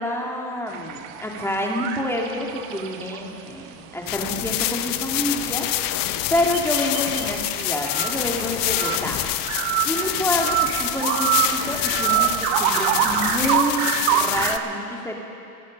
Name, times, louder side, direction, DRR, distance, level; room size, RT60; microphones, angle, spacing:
voice 1, 0.0-9.2 9.8-15.1, left 1 dB, 5° left, -1 dB, 2.5 m, -28 dB
sound 1, 0.7-3.5 3.8-3.9 4.3-4.5 4.8-4.9 5.2-5.3 5.6-14.6, right 13 dB, 70° right, 0.9 m, -26 dB
sound 2, 4.1-14.6, left 14 dB, 50° left, 0.8 m, -26 dB
24.5 x 9.3 x 5.4 m, 2.8 s
supercardioid pair, 95°, 44 cm